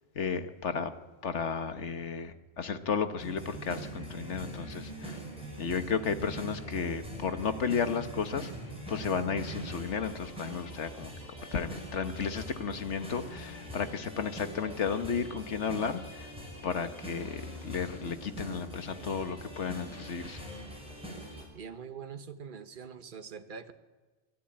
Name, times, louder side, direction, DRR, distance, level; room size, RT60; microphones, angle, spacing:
voice 1, 0.1-0.9 1.2-5.2 5.6-8.5 8.9-11.1 11.5-16.3 16.6-20.4, left 6 dB, 70° left, 9 dB, 1.5 m, -33 dB
sound 1, 3.2-21.4, equal, 5° right, 6.3 m, -43 dB
voice 2, 21.5-23.7, right 6 dB, 45° right, 9 dB, 1.2 m, -43 dB
24.0 x 13.5 x 8.8 m, 1.3 s
omnidirectional pair, 1.2 m